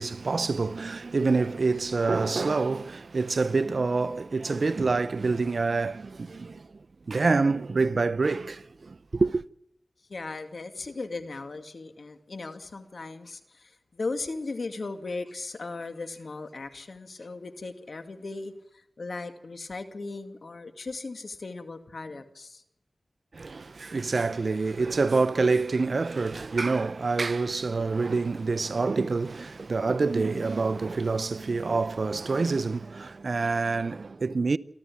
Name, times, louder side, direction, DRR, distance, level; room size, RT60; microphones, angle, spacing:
voice 1, 0.0-6.7 7.1-9.4 23.3-34.6, right 4 dB, 70° right, 0.7 m, -26 dB
voice 2, 10.1-22.6, left 3 dB, 70° left, 2.2 m, -37 dB
28.0 x 13.0 x 8.6 m
cardioid pair, 40°, 0 cm